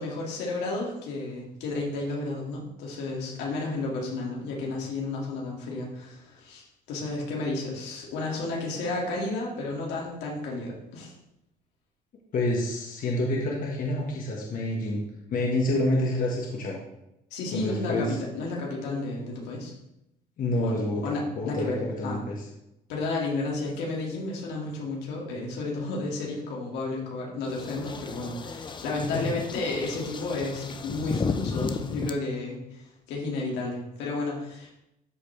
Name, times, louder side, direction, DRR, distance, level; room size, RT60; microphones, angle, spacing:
voice 1, 0.0-11.1 17.3-19.7 20.6-21.8 22.0-22.2 22.9-34.7, left 2 dB, 90° left, -2 dB, 2.3 m, -32 dB
voice 2, 12.3-15.0 15.3-16.8 17.5-18.2 20.4-22.4 29.0-29.2, left 1 dB, 55° left, -2 dB, 1.6 m, -28 dB
sound 1, 27.5-32.1, left 5 dB, 25° left, 0.6 m, -34 dB
12.5 x 4.3 x 3.4 m, 0.87 s
cardioid pair, 110°, 17 cm